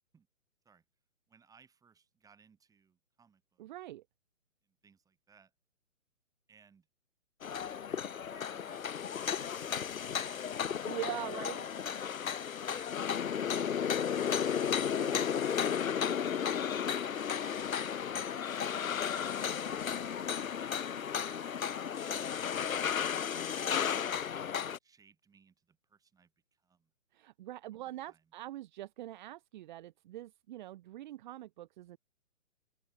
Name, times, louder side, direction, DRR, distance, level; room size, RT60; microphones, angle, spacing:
voice 1, 1.3-3.6 4.6-5.5 6.5-6.9 8.1-11.0 12.7-12.9 13.4-15.4 16.4-16.7 18.6-19.5 19.7-21.0 24.8-26.9 27.8-28.3, right 6 dB, 10° right, 6.9 m, -65 dB
voice 2, 3.6-4.0 10.9-11.7 15.0-15.2 27.1-32.0, right 14 dB, 35° right, 1.8 m, -43 dB
sound 1, 7.4-24.8, left 8 dB, 80° left, 0.8 m, -34 dB
open air
hypercardioid pair, 145°, 40 cm